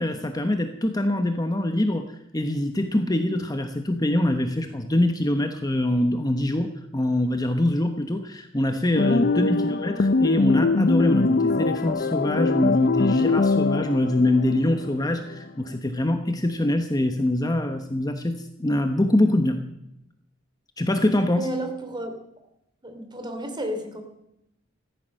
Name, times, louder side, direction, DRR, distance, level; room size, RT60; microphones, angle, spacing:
voice 1, 0.0-2.1 2.3-19.6 20.8-21.5, left 1 dB, 20° left, 7 dB, 1.0 m, -24 dB
sound 1, 8.9-15.3, left 3 dB, 50° left, 0.6 m, -22 dB
voice 2, 21.3-22.1 22.8-24.0, right 1 dB, 25° right, 5 dB, 2.9 m, -32 dB
15.0 x 13.5 x 6.4 m, 0.81 s
head